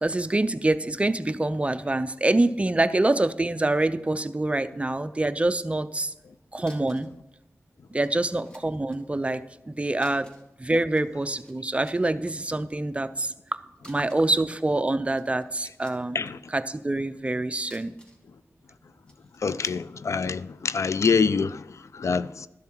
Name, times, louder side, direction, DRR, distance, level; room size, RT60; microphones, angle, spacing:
voice 1, 0.0-6.1 6.5-7.1 7.9-10.3 10.6-13.3 13.9-16.2 16.5-17.9, right 2 dB, 25° right, 0.5 m, -25 dB
sound 1, 6.7-7.2 7.4-7.5 8.0-9.0 9.9-10.5 10.8-11.5 11.8-12.3 13.8-14.4 15.0-16.3 17.6-18.3 19.1-19.9, equal, 20° left, 2.1 m, -54 dB
voice 2, 19.4-22.5, left 5 dB, 65° left, 0.4 m, -25 dB
12.5 x 7.2 x 4.5 m
wide cardioid pair, 75°, 5 cm